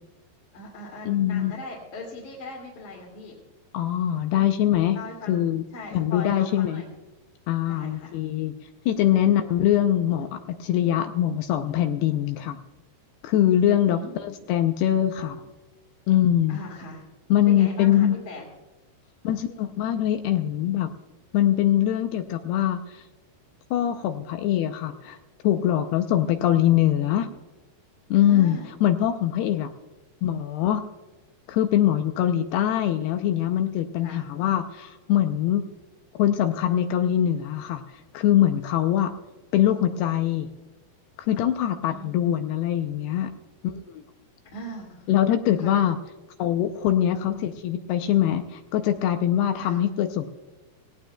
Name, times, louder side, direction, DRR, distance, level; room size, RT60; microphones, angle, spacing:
voice 1, 0.5-3.3 4.3-4.5 4.9-5.3 5.7-6.9 7.7-8.2 10.9-11.0 13.9-14.3 16.5-17.1 17.5-18.5 28.1-28.8 34.0-34.2 41.9-42.1 44.5-45.1 45.6-45.9 49.5-49.8, left 1 dB, 50° left, -4 dB, 3.3 m, -39 dB
voice 2, 1.1-1.5 3.7-5.0 5.3-5.6 5.9-6.8 7.5-8.5 8.9-12.6 13.2-15.4 16.1-16.6 17.3-18.2 19.2-20.9 21.3-23.0 23.7-25.2 25.4-27.3 28.1-29.7 30.2-30.9 31.5-35.6 36.2-39.1 39.5-40.5 41.2-43.3 43.6-44.0 45.1-46.0 46.4-50.3, left 11 dB, 80° left, 7 dB, 2.5 m, -23 dB
18.0 x 18.0 x 2.3 m, 1.1 s
omnidirectional pair, 5.0 m